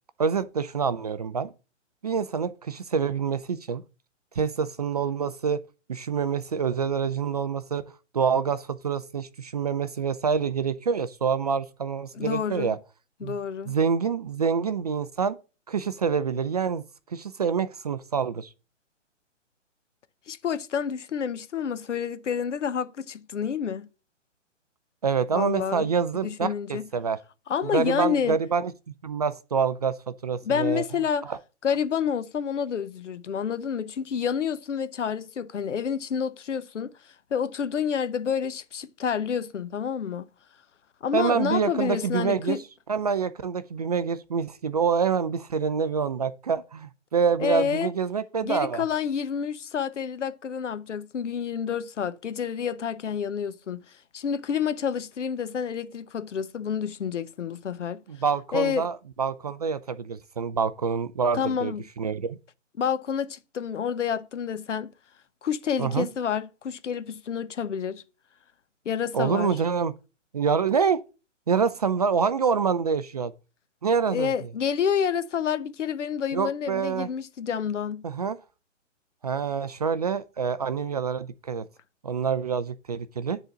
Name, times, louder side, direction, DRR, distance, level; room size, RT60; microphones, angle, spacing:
voice 1, 0.2-1.5 2.0-3.8 4.4-5.6 5.9-7.8 8.1-12.8 13.2-13.4 13.7-15.4 15.7-16.8 17.1-18.5 25.0-27.2 27.6-28.7 29.0-30.8 31.2-31.4 41.1-42.6 42.9-48.8 58.1-62.4 65.8-66.1 69.1-69.9 70.3-71.0 71.5-73.3 73.8-74.3 76.3-77.1 78.0-78.4 79.2-81.7 82.0-83.4, right 6 dB, 35° right, 0.4 m, -26 dB
voice 2, 12.1-12.7 13.2-13.7 20.3-23.9 25.3-25.9 26.2-26.8 27.5-28.4 30.4-31.2 31.6-36.9 37.3-40.3 41.0-42.6 47.4-47.9 48.4-53.8 54.1-58.0 58.5-58.9 61.3-61.8 62.8-64.9 65.4-68.0 68.8-69.5 74.1-78.0, left 7 dB, 70° left, 1.0 m, -29 dB
10.0 x 3.9 x 6.1 m
hypercardioid pair, 135°, 37 cm